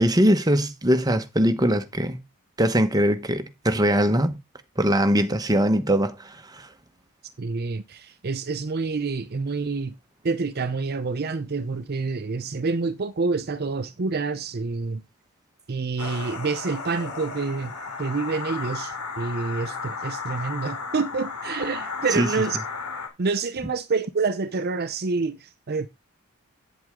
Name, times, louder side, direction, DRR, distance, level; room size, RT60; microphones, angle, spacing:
voice 1, 0.0-2.2 2.6-4.4 4.8-6.7 22.1-22.3, equal, 15° right, 1.0 m, -21 dB
voice 2, 7.4-9.9 10.2-15.0 15.7-17.7 18.0-22.6 23.2-25.9, right 4 dB, 45° right, 0.6 m, -27 dB
sound 1, 16.0-23.1, left 4 dB, 85° left, 2.9 m, -34 dB
8.7 x 7.9 x 3.6 m
head